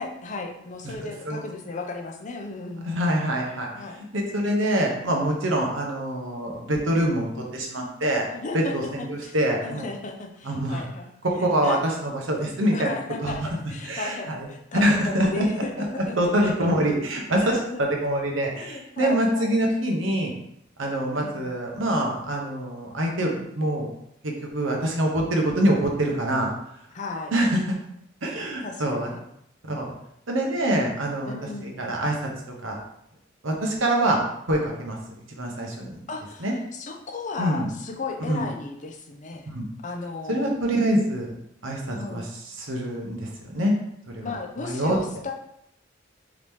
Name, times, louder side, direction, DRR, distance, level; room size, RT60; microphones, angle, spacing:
voice 1, 0.0-3.2 3.7-4.0 8.3-9.4 9.6-11.1 11.4-11.8 12.7-16.8 17.4-17.8 18.5-19.6 21.1-21.5 26.9-27.3 28.6-29.2 31.2-31.8 36.1-39.5 39.8-40.5 41.9-42.3 44.2-45.3, left 3 dB, 40° left, 2 dB, 0.6 m, -35 dB
voice 2, 0.8-1.4 2.8-3.7 3.9-8.3 8.5-9.9 10.4-10.8 11.5-12.9 13.2-13.5 13.8-14.5 14.8-15.5 15.8-15.9 16.2-20.3 20.8-23.9 24.2-26.5 27.3-27.6 28.2-29.1 29.7-29.9 30.3-31.3 31.6-32.3 32.6-32.8 33.4-35.0 35.3-36.0 36.4-36.5 37.4-37.7 38.3-38.4 39.5-39.6 40.3-41.3 41.6-42.3 42.6-43.7 44.1-44.3 44.6-45.0, right 1 dB, 90° right, 0 dB, 1.0 m, -25 dB
4.9 x 3.0 x 3.6 m, 0.77 s
head